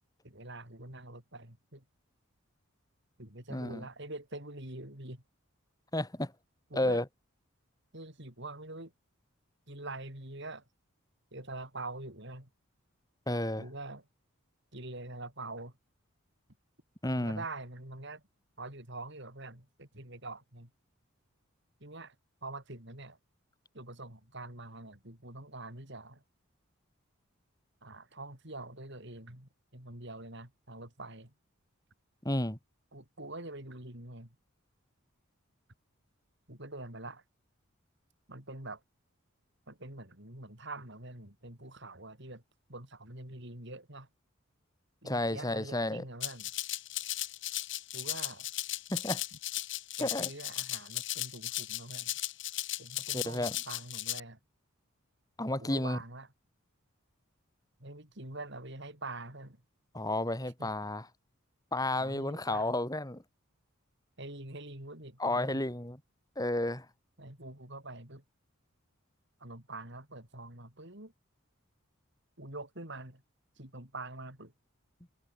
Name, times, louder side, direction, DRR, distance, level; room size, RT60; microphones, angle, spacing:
voice 1, 0.2-1.8 3.2-5.2 6.7-7.0 7.9-8.9 9.7-10.6 11.3-12.5 13.6-14.0 14.7-15.7 17.2-18.2 18.6-20.7 21.8-22.1 22.4-23.2 23.7-26.2 27.8-31.3 32.9-34.3 36.5-37.2 38.3-38.8 39.7-42.4 42.7-44.1 45.0-46.5 47.9-48.5 50.0-52.1 52.8-54.4 55.6-56.3 57.8-59.6 60.6-60.7 61.9-62.7 64.2-65.6 67.2-68.2 69.4-71.1 72.4-73.2 73.6-74.5, right 2 dB, 55° right, 6.1 m, -45 dB
voice 2, 3.5-3.8 5.9-6.3 6.7-7.0 13.3-13.6 17.0-17.4 32.2-32.6 45.0-46.0 48.9-49.2 50.0-50.3 53.1-53.6 55.4-56.0 59.9-61.1 61.7-63.2 65.2-66.0 66.4-66.9, left 1 dB, 15° left, 3.3 m, -32 dB
Rattle (instrument), 46.2-54.2, left 15 dB, 60° left, 2.2 m, -36 dB
head